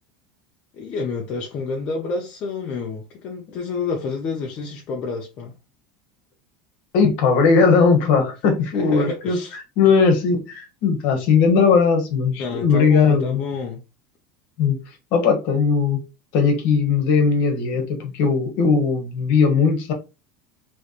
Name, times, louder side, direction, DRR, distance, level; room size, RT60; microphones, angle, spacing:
voice 1, 0.7-5.5 8.7-9.6 12.4-13.8, left 4 dB, 30° left, 0.7 m, -29 dB
voice 2, 6.9-9.4 9.8-13.4 14.6-14.8 15.1-16.0 16.3-19.9, left 5 dB, 45° left, 1.3 m, -18 dB
3.3 x 3.1 x 4.1 m
cardioid pair, 180°, 4 cm